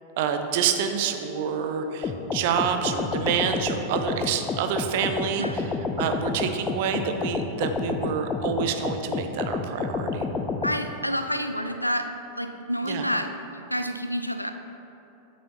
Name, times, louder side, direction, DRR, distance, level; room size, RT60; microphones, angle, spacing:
voice 1, 0.2-5.7 6.0-10.3 12.8-13.1, right 7 dB, 50° right, 6 dB, 0.5 m, -27 dB
sound 1, 2.0-10.8, left 4 dB, 20° left, 0.4 m, -29 dB
voice 2, 10.6-12.1 12.4-14.5, equal, 90° left, 7 dB, 0.4 m, -29 dB
7.8 x 6.2 x 2.9 m, 2.9 s
figure-of-eight pair, 90°, 0 cm